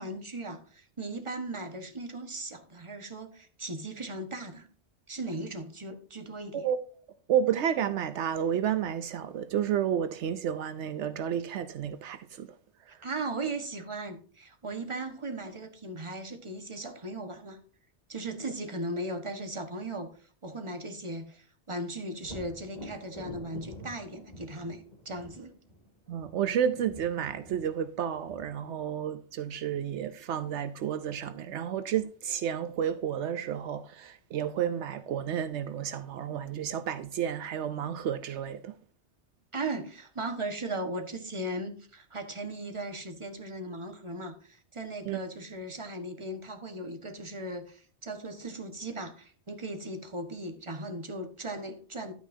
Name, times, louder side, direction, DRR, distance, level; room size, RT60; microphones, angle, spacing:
voice 1, 0.0-4.7 5.1-6.7 13.0-17.6 18.1-20.1 20.4-25.5 39.5-52.1, right 2 dB, 25° right, 1.4 m, -37 dB
voice 2, 7.3-12.5 26.1-38.7 45.1-45.2, right 9 dB, 80° right, 0.9 m, -31 dB
Thunder, 22.2-29.9 33.5-33.6 34.1-35.0, left 1 dB, 40° left, 3.0 m, -48 dB
11.5 x 9.2 x 2.7 m
omnidirectional pair, 1.2 m